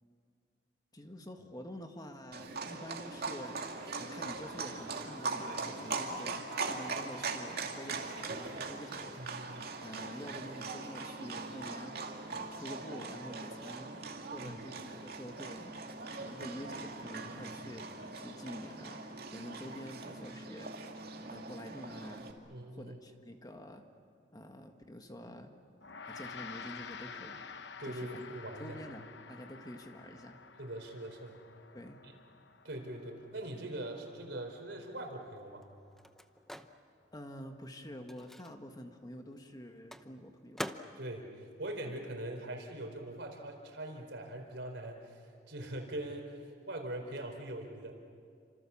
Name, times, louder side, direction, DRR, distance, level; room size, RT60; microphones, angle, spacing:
voice 1, 0.9-3.6 4.0-9.2 9.8-12.0 12.3-13.9 14.3-15.7 16.1-19.0 19.3-20.7 21.3-22.3 22.7-23.8 24.3-25.5 26.0-27.4 27.8-28.3 28.6-30.4 31.7-32.0 37.1-40.7, equal, 20° left, 5 dB, 1.7 m, -47 dB
Livestock farm animals working animals, 2.3-22.3, right 3 dB, 60° right, 2.4 m, -41 dB
voice 2, 9.2-9.6 14.4-14.6 22.5-23.0 27.8-28.8 30.6-31.4 32.0-32.1 32.6-35.6 41.0-48.0, right 1 dB, 75° right, 3 dB, 4.4 m, -42 dB
Gong, 25.8-35.3, left 5 dB, 65° left, 1.0 m, -50 dB
Microwave oven, 34.6-42.8 43.0-44.9, equal, ahead, 0.8 m, -49 dB
29.5 x 26.5 x 7.2 m, 2.3 s
head